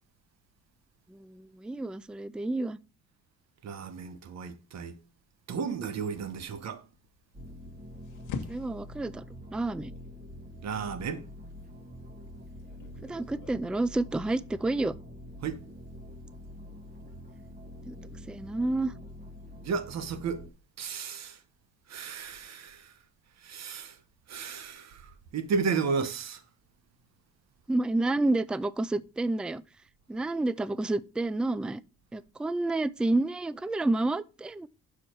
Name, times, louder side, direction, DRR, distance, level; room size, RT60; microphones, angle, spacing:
voice 1, 1.1-2.8 8.4-9.2 9.5-9.9 13.0-14.9 17.9-18.0 18.3-18.9 27.7-29.6 30.1-31.8 32.1-34.7, right 2 dB, 5° right, 0.3 m, -29 dB
voice 2, 3.6-5.0 5.5-6.8 10.6-11.2 15.4-15.6 19.6-20.4 20.8-21.4 21.9-22.9 23.4-24.0 24.3-26.4, right 5 dB, 60° right, 1.1 m, -33 dB
sound 1, 6.0-13.6, left 6 dB, 90° left, 1.2 m, -46 dB
sound 2, 7.3-20.5, left 1 dB, 25° right, 1.7 m, -46 dB
6.4 x 4.7 x 4.4 m
cardioid pair, 90°, 30 cm